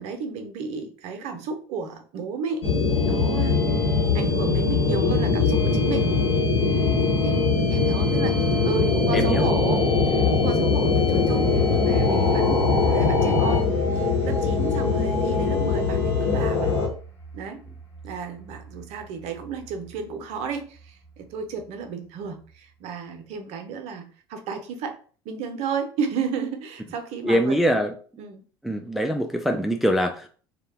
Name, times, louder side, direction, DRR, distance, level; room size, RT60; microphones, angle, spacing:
voice 1, 0.0-2.7 3.1-3.6 4.1-6.1 7.2-13.6 14.0-16.7 17.3-17.6 18.0-25.0 25.2-27.8 28.2-28.4, right 5 dB, 55° right, 6 dB, 0.6 m, -32 dB
sound 1, 2.6-16.9, left 4 dB, 70° left, 1.0 m, -21 dB
voice 2, 9.1-9.5 27.2-27.9 28.6-30.3, equal, ahead, 5 dB, 0.3 m, -23 dB
sound 2, 10.8-21.2 21.6-21.9, right 4 dB, 15° left, 0.8 m, -37 dB
2.4 x 2.2 x 3.2 m, 0.41 s
figure-of-eight pair, 65°, 14 cm